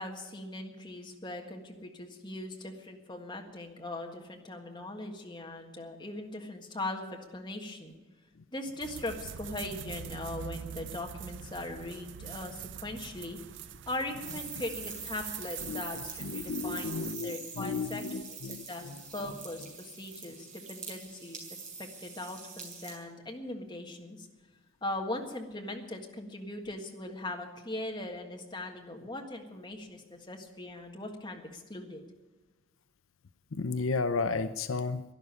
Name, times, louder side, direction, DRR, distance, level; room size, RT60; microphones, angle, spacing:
voice 1, 0.0-7.0 7.3-7.9 8.5-13.4 13.9-18.0 18.5-21.4 21.8-24.3 24.8-32.0, left 2 dB, 20° left, 2 dB, 1.7 m, -40 dB
sound 1, 8.8-17.1, right 8 dB, 55° right, 0.4 m, -44 dB
sound 2, 14.2-23.0, right 5 dB, 35° right, 3.6 m, -44 dB
voice 2, 16.2-19.0 33.5-35.0, left 4 dB, 70° left, 11 dB, 0.6 m, -33 dB
12.0 x 11.0 x 9.6 m, 1.2 s
head